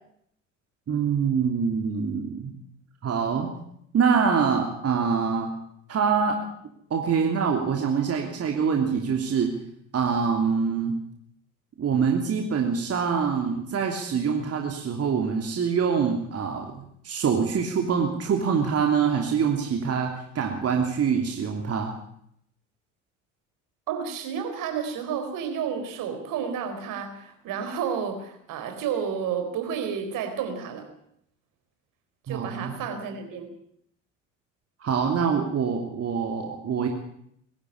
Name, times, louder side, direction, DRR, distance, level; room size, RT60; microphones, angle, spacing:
voice 1, 0.9-2.5 3.0-3.5 3.9-5.5 5.9-6.4 6.9-9.5 9.9-11.0 11.8-21.9 32.3-32.8 34.8-36.9, right 6 dB, 40° right, 2 dB, 3.1 m, -25 dB
voice 2, 23.9-30.9 32.3-33.5, right 7 dB, 55° right, 7 dB, 4.4 m, -31 dB
22.0 x 12.5 x 10.0 m, 0.71 s
figure-of-eight pair, 60°, 38 cm